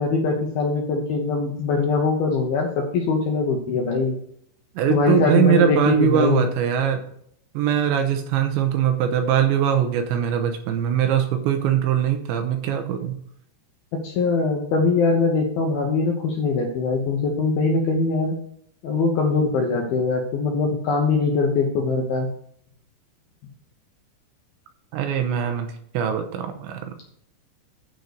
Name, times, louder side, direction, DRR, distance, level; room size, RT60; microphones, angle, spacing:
voice 1, 0.0-4.2 4.9-6.5 14.0-18.3 18.8-22.3, left 4 dB, 75° left, 1 dB, 2.2 m, -22 dB
voice 2, 4.8-7.0 7.5-13.2 24.9-26.8, right 8 dB, 80° right, 6 dB, 3.0 m, -21 dB
9.5 x 4.4 x 6.5 m, 0.67 s
omnidirectional pair, 5.5 m